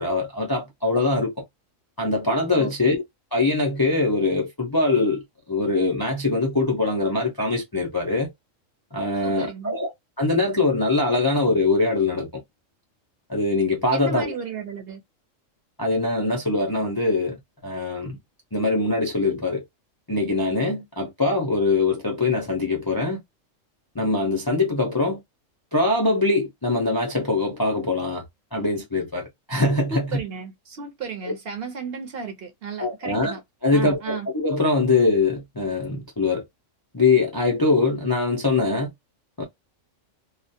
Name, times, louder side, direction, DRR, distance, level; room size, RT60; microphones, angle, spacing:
voice 1, 0.0-1.4 2.0-3.0 3.3-5.2 5.5-8.3 8.9-9.9 10.2-12.4 13.3-14.3 15.8-17.4 17.6-18.2 18.5-19.6 20.1-23.2 23.9-25.2 25.7-28.2 28.5-30.2 31.2-31.3 32.8-36.4 36.9-38.9 39.4-39.5, left 3 dB, 30° left, 0.4 m, -23 dB
voice 2, 9.2-9.8 13.9-15.0 29.9-33.4 33.7-34.3, right 6 dB, 55° right, 0.8 m, -34 dB
2.4 x 2.0 x 2.6 m
omnidirectional pair, 1.4 m